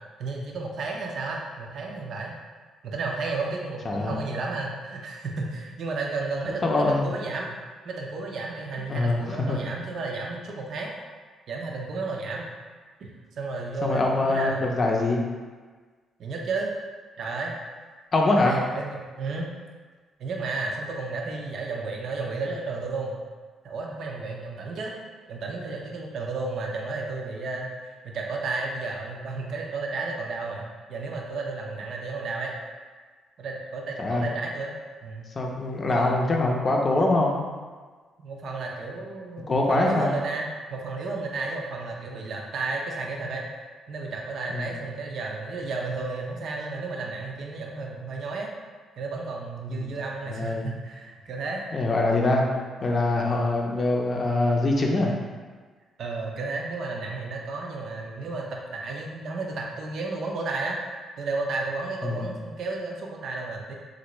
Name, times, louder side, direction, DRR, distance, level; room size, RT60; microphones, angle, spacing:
voice 1, 0.2-2.4 2.8-7.6 7.8-11.0 11.5-12.5 13.0-14.7 16.2-16.7 17.2-17.5 18.3-19.5 20.2-23.1 23.6-24.9 25.3-27.7 28.0-32.5 33.4-34.7 35.0-35.3 35.8-36.4 38.2-43.4 43.9-48.5 49.0-51.6 56.0-60.8 61.2-63.7, right 3 dB, 65° right, 0 dB, 0.5 m, -32 dB
voice 2, 3.9-4.2 6.6-7.1 8.9-9.2 9.5-9.6 13.8-15.2 18.1-18.5 34.0-34.3 35.4-37.4 39.5-40.2 44.5-44.7 49.7-49.9 50.3-50.7 51.7-52.4 52.8-55.1 62.0-62.3, left 2 dB, 35° left, 0 dB, 0.5 m, -23 dB
3.3 x 2.5 x 3.0 m, 1.5 s
cardioid pair, 90°, 0 cm